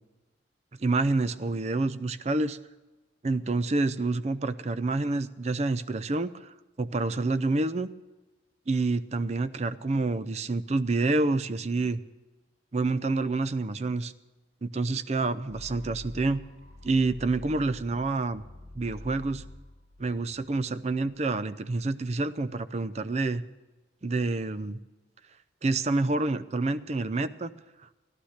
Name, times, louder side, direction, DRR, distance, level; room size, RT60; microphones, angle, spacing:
voice 1, 0.8-2.6 3.2-7.9 8.7-12.0 12.7-14.1 14.6-16.4 16.8-18.4 18.8-19.4 20.0-23.4 24.0-24.8 25.6-27.5, right 3 dB, 35° right, 14 dB, 0.5 m, -28 dB
sound 1, 15.5-21.4, left 1 dB, 85° right, 5.2 m, -46 dB
15.0 x 11.5 x 6.6 m, 1.2 s
head